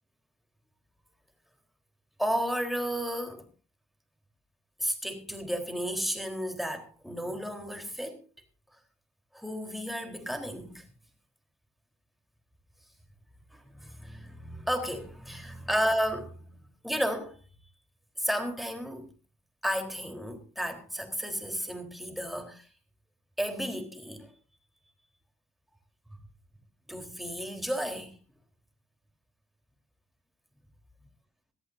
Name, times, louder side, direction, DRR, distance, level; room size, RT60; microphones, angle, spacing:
voice 1, 2.2-3.4 4.8-8.2 9.3-10.8 13.5-17.4 18.2-19.1 19.6-22.7 23.4-24.3 26.9-28.1, equal, ahead, 4.0 m, -33 dB
22.5 x 14.0 x 2.7 m
cardioid pair, 80°, 31 cm